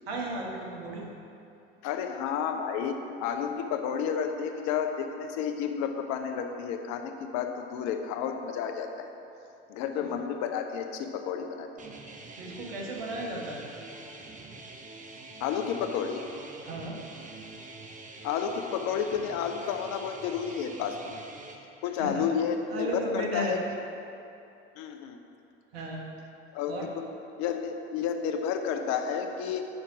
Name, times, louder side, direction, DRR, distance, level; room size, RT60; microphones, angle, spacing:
voice 1, 0.1-1.1 10.0-10.1 12.4-13.7 16.6-17.0 22.0-22.2 22.7-23.6 25.7-26.0 26.7-26.9, right 1 dB, 80° right, -1 dB, 1.5 m, -34 dB
voice 2, 1.8-9.1 9.7-11.7 15.4-16.2 18.2-21.2 21.8-22.9 23.1-23.6 24.8-25.2 26.5-27.0 27.4-29.6, left 7 dB, 65° left, 6 dB, 0.8 m, -31 dB
sound 1, 11.8-21.6, right 3 dB, 25° right, 1.0 m, -46 dB
8.8 x 5.9 x 4.7 m, 2.7 s
hypercardioid pair, 70°, 30 cm